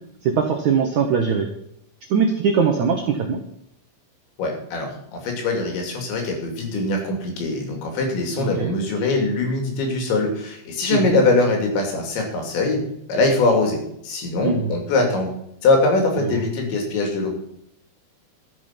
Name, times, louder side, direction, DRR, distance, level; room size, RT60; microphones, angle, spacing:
voice 1, 0.2-1.5 2.1-3.4 8.4-8.7 10.9-11.2 14.4-14.7 16.2-16.4, right 6 dB, 75° right, 3 dB, 1.7 m, -21 dB
voice 2, 4.4-12.8 13.1-15.3 15.6-17.3, left 3 dB, 75° left, 2 dB, 5.0 m, -22 dB
13.5 x 8.3 x 5.9 m, 0.74 s
omnidirectional pair, 5.3 m